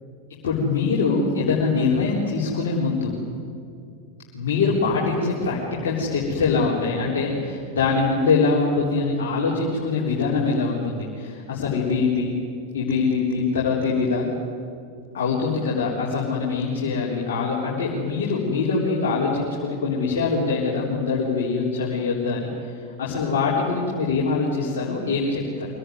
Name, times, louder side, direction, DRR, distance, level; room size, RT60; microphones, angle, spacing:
voice 1, 0.4-3.1 4.3-12.3 12.7-14.3 15.1-25.7, left 4 dB, 60° left, -5 dB, 4.0 m, -23 dB
24.5 x 18.0 x 9.5 m, 2.5 s
figure-of-eight pair, 90°, 0 cm